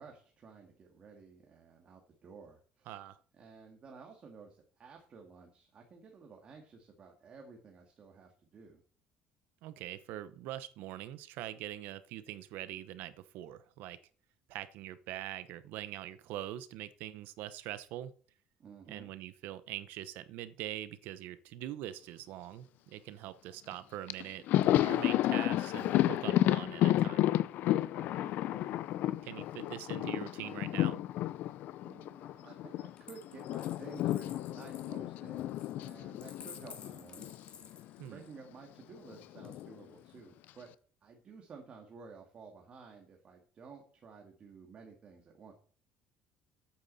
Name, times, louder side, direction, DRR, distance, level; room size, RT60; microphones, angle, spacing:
voice 1, 0.0-2.9 3.3-8.8 18.6-19.1 27.9-28.7 31.8-37.5 38.1-40.7 41.0-45.5, right 5 dB, 35° right, 2 dB, 2.1 m, -53 dB
voice 2, 2.9-3.2 9.6-14.0 14.5-18.1 18.9-27.3 29.2-31.0 38.0-38.2, right 13 dB, 75° right, 14 dB, 0.9 m, -43 dB
Thunder, 23.7-23.8 24.1-32.9 33.2-37.5 37.7-37.9 39.1-39.8, left 14 dB, 60° left, 0.5 m, -31 dB
Coin (dropping), 33.0-38.4 39.4-40.2, left 6 dB, 35° left, 2.0 m, -54 dB
13.0 x 8.8 x 4.1 m, 0.44 s
cardioid pair, 145°, 3 cm